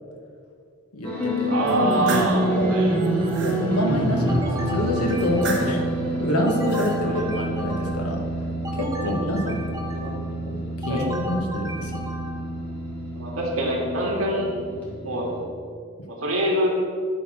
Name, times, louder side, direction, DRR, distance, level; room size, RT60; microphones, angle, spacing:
voice 1, 0.9-1.5 2.2-2.7 3.1-5.8 6.2-8.2 8.8-9.7 10.5-12.1, left 1 dB, 85° left, 2 dB, 1.4 m, -27 dB
sound 1, 1.0-15.4, right 1 dB, 10° left, 2.3 m, -27 dB
voice 2, 1.5-2.9 7.1-7.2 9.0-9.3 9.9-10.2 10.9-11.1 13.2-14.5 15.0-15.3 16.1-16.7, right 1 dB, 70° right, -2 dB, 2.1 m, -25 dB
sound 2, 1.7-2.4 2.9-3.6 5.2-5.9 6.5-7.0, right 3 dB, 50° right, 1.4 m, -33 dB
sound 3, 4.3-5.9 6.5-8.2 8.6-10.3 10.8-12.5, left 1 dB, 15° right, 0.6 m, -35 dB
11.0 x 4.1 x 6.0 m, 2.3 s
head